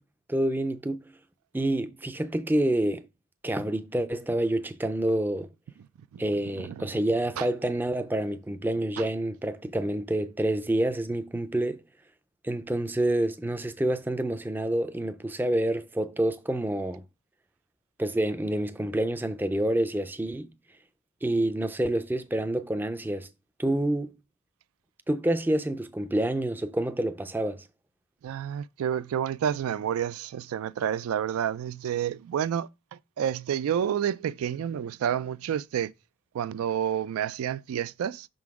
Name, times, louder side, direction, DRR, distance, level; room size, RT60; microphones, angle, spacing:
voice 1, 0.3-1.1 1.5-3.1 3.4-5.5 6.2-11.8 12.4-17.0 18.0-20.5 21.2-23.3 23.6-24.1 25.1-27.7, right 1 dB, 10° right, 0.3 m, -28 dB
voice 2, 28.2-32.7 33.2-35.9 36.3-38.3, right 9 dB, 90° right, 0.3 m, -29 dB
5.9 x 3.8 x 4.7 m
head